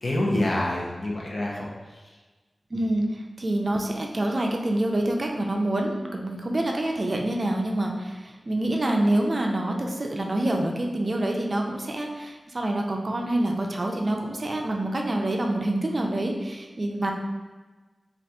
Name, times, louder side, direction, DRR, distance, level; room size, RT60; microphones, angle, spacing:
voice 1, 0.0-1.7, left 1 dB, 55° left, -3 dB, 0.7 m, -26 dB
voice 2, 2.7-17.1, right 1 dB, 45° right, 1 dB, 0.4 m, -26 dB
2.8 x 2.4 x 3.3 m, 1.2 s
wide cardioid pair, 60°, 0 cm